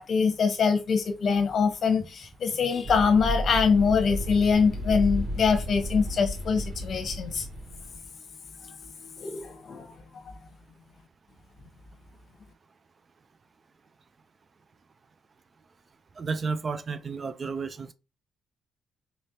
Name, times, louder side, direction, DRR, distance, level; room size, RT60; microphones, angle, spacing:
voice 1, 0.0-7.5 8.6-9.9, left 5 dB, 55° left, 1.0 m, -24 dB
sound 1, 2.8-8.1, equal, 55° right, 2.4 m, -33 dB
voice 2, 16.2-17.9, right 4 dB, 40° right, 0.5 m, -32 dB
4.1 x 3.2 x 2.8 m
cardioid pair, 90°, 0 cm